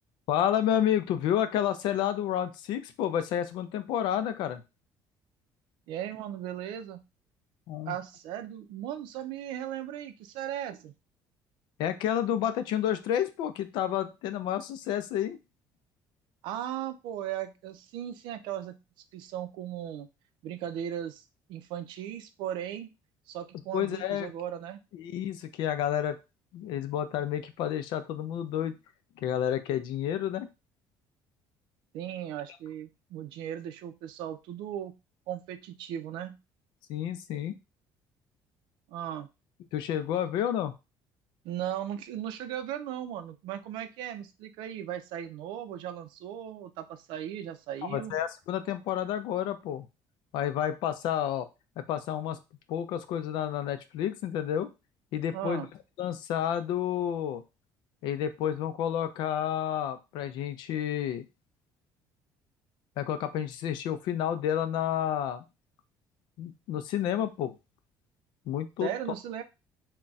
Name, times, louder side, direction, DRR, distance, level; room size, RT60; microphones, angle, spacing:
voice 1, 0.3-4.6 7.7-7.9 11.8-15.4 23.7-24.3 24.9-26.2 26.5-28.8 29.2-30.5 36.9-37.6 39.7-40.7 47.8-49.9 50.3-51.5 51.8-52.4 52.7-54.7 55.1-55.7 56.0-57.4 58.0-61.2 63.0-65.4 66.4-67.5 68.5-68.9, left 10 dB, 75° left, 10 dB, 0.4 m, -30 dB
voice 2, 5.9-7.0 7.9-10.9 16.4-18.8 19.1-20.1 20.4-21.2 21.5-22.9 23.3-24.8 31.9-34.9 35.3-36.4 38.9-39.3 41.4-48.1 55.3-55.7 68.8-69.4, right 10 dB, 80° right, 9 dB, 0.4 m, -37 dB
2.3 x 2.2 x 3.9 m, 0.26 s
cardioid pair, 155°, 8 cm